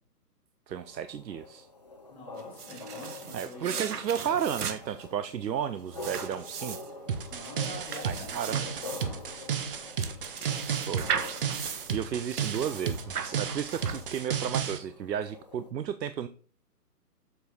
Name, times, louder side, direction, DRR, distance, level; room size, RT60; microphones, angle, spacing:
sound 1, 0.7-15.7, left 3 dB, 30° left, 0.4 m, -46 dB
voice 1, 0.7-1.7 3.3-6.8 8.0-8.6 10.7-11.1 11.9-16.3, right 9 dB, 90° right, 11 dB, 0.7 m, -33 dB
voice 2, 2.1-3.9 7.3-9.2, left 1 dB, 5° left, -5 dB, 1.3 m, -45 dB
Paging through a book, 2.4-14.5, right 7 dB, 65° right, 1.2 m, -38 dB
sound 2, 7.1-14.8, right 7 dB, 35° right, 0.7 m, -33 dB
7.9 x 5.3 x 4.0 m, 0.42 s
hypercardioid pair, 150°, 49 cm